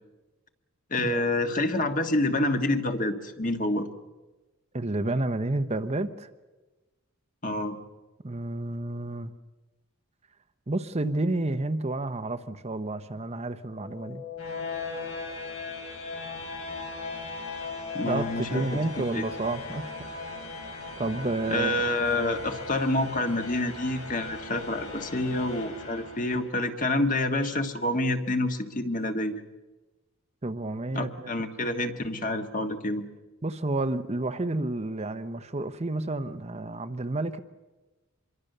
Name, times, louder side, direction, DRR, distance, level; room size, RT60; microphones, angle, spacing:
voice 1, 0.9-3.9 7.4-7.8 17.9-18.7 19.0-19.2 21.5-29.4 30.9-33.0, left 2 dB, 35° left, 6 dB, 1.5 m, -28 dB
voice 2, 4.7-6.3 8.2-9.3 10.7-14.2 18.1-18.2 18.5-20.1 21.0-21.8 30.4-31.3 33.4-37.4, right 2 dB, 30° right, 9 dB, 0.8 m, -30 dB
sound 1, 13.7-26.7, left 3 dB, 75° left, 7.1 m, -38 dB
26.0 x 22.5 x 6.7 m, 1.2 s
head